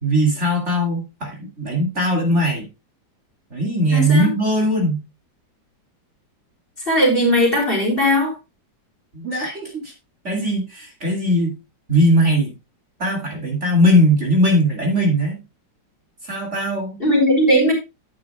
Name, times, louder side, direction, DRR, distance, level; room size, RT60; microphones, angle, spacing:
voice 1, 0.0-2.6 3.5-5.0 9.1-9.9 10.2-11.6 11.9-12.5 13.0-15.4 16.2-17.0, equal, 35° right, 0 dB, 2.8 m, -19 dB
voice 2, 3.9-4.3 6.9-8.3 17.0-17.7, equal, 30° left, 0 dB, 3.9 m, -17 dB
11.0 x 9.1 x 2.3 m, 0.24 s
omnidirectional pair, 2.0 m